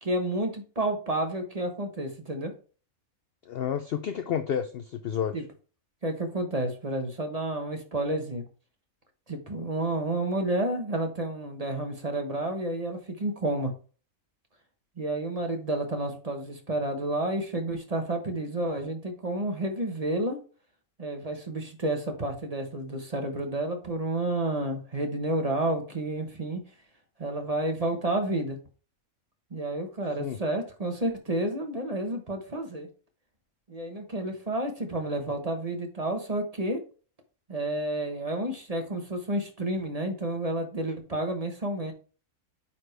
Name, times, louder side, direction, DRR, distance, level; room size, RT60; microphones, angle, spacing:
voice 1, 0.0-2.5 5.3-5.4 6.0-8.4 9.3-13.7 15.0-20.4 21.0-26.6 27.2-28.6 29.5-32.9 33.7-36.8 37.5-41.9, right 1 dB, 30° right, 1.1 m, -30 dB
voice 2, 3.5-5.4 30.2-30.4, left 8 dB, 65° left, 0.6 m, -30 dB
9.0 x 4.3 x 3.3 m
omnidirectional pair, 1.5 m